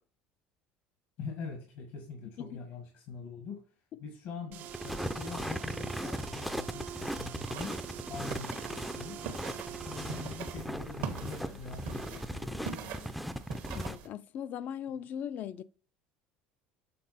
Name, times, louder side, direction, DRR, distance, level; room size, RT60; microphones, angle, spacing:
voice 1, 1.2-3.7 4.0-7.8 8.1-9.3 9.8-13.2, left 5 dB, 70° left, 1.6 m, -44 dB
sound 1, 4.5-10.7, right 10 dB, 60° right, 0.6 m, -45 dB
sound 2, 4.7-14.0, equal, ahead, 0.5 m, -38 dB
sound 3, 7.4-14.1, right 7 dB, 75° right, 1.3 m, -43 dB
voice 2, 13.7-15.6, left 9 dB, 55° left, 0.5 m, -39 dB
7.7 x 3.7 x 4.3 m
supercardioid pair, 100°, 4 cm